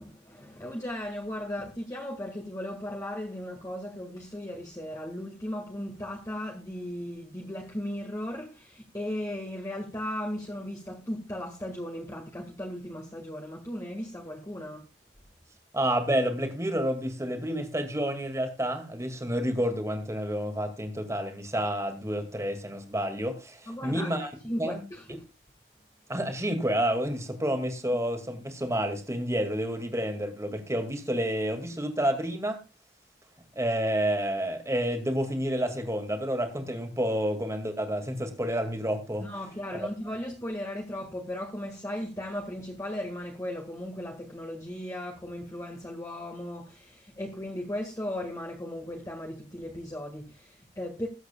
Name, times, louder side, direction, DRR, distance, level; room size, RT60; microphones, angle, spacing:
voice 1, 0.0-14.9 23.7-25.3 39.2-51.1, left 1 dB, 20° left, 1.8 m, -36 dB
voice 2, 15.7-24.3 24.6-24.8 26.1-32.6 33.5-39.3 39.7-39.9, equal, 15° right, 2.2 m, -29 dB
21.0 x 8.0 x 2.3 m
head